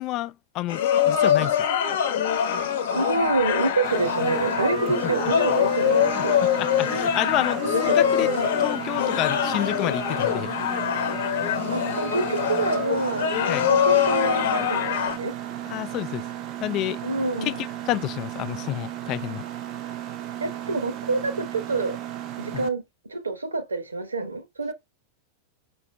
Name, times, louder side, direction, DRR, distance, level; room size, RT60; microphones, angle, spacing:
voice 1, 0.0-1.6 6.1-6.2 6.6-8.3 8.6-10.5 13.5-13.7 15.7-16.2 16.6-17.0 17.4-19.4 22.5-22.7, left 15 dB, 40° left, 0.3 m, -29 dB
sound 1, 0.7-15.2, left 9 dB, 55° left, 0.9 m, -24 dB
voice 2, 2.9-6.4 7.7-8.5 11.7-13.3 13.7-15.3 17.0-17.6 20.4-22.0 22.4-24.7, right 3 dB, 75° right, 1.0 m, -27 dB
Mechanisms, 3.8-22.7, right 12 dB, 35° right, 0.6 m, -35 dB
5.7 x 2.6 x 3.2 m
figure-of-eight pair, 90°, 0 cm